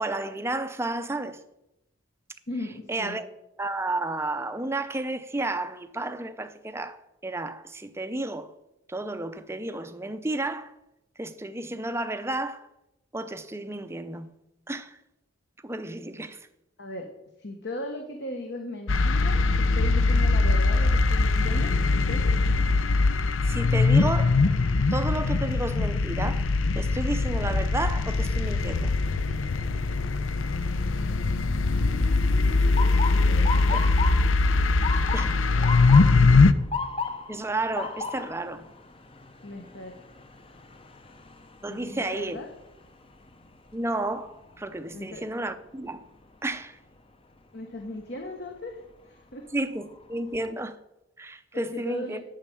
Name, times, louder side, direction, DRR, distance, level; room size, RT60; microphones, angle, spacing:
voice 1, 0.0-1.4 2.9-3.3 3.6-8.5 8.9-10.7 11.2-12.7 13.1-14.4 14.7-15.0 15.6-16.4 23.4-24.4 24.9-26.5 26.7-28.9 33.7-33.8 35.1-35.4 37.3-38.7 41.6-42.4 43.7-46.0 46.4-46.8 49.5-50.8 51.2-52.2, right 2 dB, 10° right, 0.6 m, -32 dB
voice 2, 2.5-3.2 16.8-17.1 17.4-22.3 33.3-34.2 35.2-36.1 39.4-40.0 41.7-42.5 44.9-45.2 47.5-48.8 49.1-49.5 51.5-52.2, left 2 dB, 55° left, 1.2 m, -38 dB
sound 1, 18.9-36.5, left 3 dB, 70° left, 0.6 m, -22 dB
Motor vehicle (road) / Siren, 32.8-44.7 45.1-45.6 46.3-46.6 48.5-48.8 49.3-49.4 49.8-50.5, left 4 dB, 25° left, 0.8 m, -36 dB
8.8 x 6.4 x 8.4 m
head